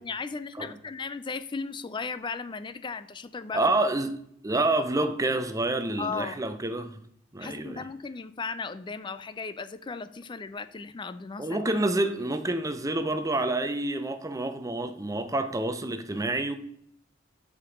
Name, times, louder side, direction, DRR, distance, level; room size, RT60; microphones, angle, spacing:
voice 1, 0.0-3.6 6.0-6.4 7.4-11.6, left 4 dB, 25° left, 0.4 m, -36 dB
voice 2, 3.5-4.2 4.4-7.0 7.3-7.8 11.4-16.5, right 2 dB, 15° right, 0.6 m, -28 dB
7.3 x 5.2 x 5.0 m
head